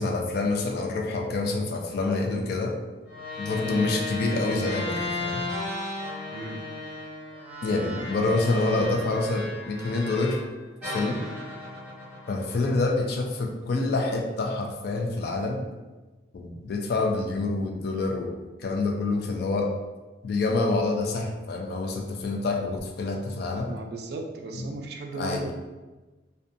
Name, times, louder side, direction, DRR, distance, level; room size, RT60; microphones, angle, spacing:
voice 1, 0.0-2.7 3.4-5.4 7.6-10.4 10.8-11.2 12.3-15.6 16.3-19.7 20.2-23.7 25.2-25.5, left 3 dB, 55° left, 1 dB, 0.3 m, -27 dB
sound 1, 3.1-10.5 10.8-13.2, left 2 dB, 10° right, 1.0 m, -35 dB
voice 2, 6.3-6.7 23.6-25.5, right 3 dB, 55° right, 2 dB, 0.3 m, -36 dB
2.6 x 2.2 x 2.5 m, 1.2 s
head